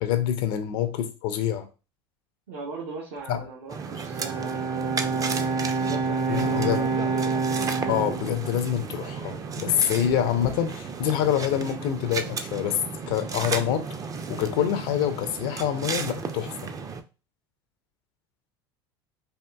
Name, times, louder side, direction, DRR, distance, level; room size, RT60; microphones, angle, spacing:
voice 1, 0.0-1.7 3.3-3.4 6.3-6.8 7.9-12.8 13.1-13.9 14.3-16.5, left 10 dB, 65° left, 0.5 m, -26 dB
voice 2, 2.5-5.4 5.8-7.4, right 4 dB, 75° right, 0.9 m, -39 dB
sound 1, 3.7-17.0, right 5 dB, 25° right, 0.4 m, -34 dB
Bowed string instrument, 3.8-9.2, right 4 dB, 55° right, 1.2 m, -28 dB
3.5 x 2.5 x 2.3 m
hypercardioid pair, 75°, 13 cm